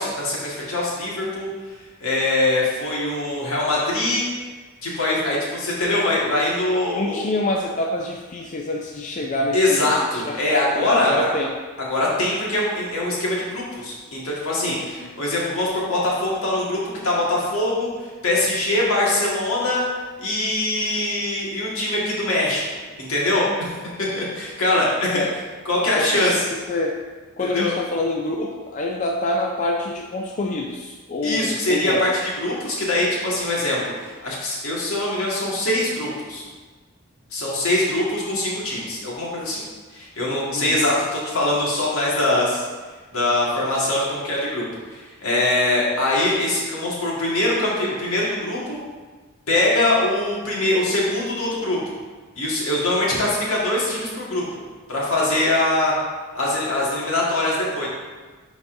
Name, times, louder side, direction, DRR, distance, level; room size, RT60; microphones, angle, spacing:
voice 1, 0.0-1.5 2.0-4.2 4.8-7.3 9.5-11.3 11.9-17.9 18.2-19.8 20.2-22.6 23.0-23.7 24.2-25.2 25.7-26.4 27.4-27.7 31.2-32.1 32.4-36.4 37.3-39.6 39.9-42.6 43.1-48.8 49.5-51.8 52.4-54.4 54.9-55.9 56.3-57.9, left 1 dB, 75° left, -5 dB, 1.8 m, -22 dB
voice 2, 6.9-11.6 14.7-15.1 25.1-25.3 26.0-27.0 27.4-32.1 40.5-40.8, left 2 dB, 35° left, 0 dB, 0.4 m, -26 dB
10.5 x 4.0 x 2.6 m, 1.3 s
head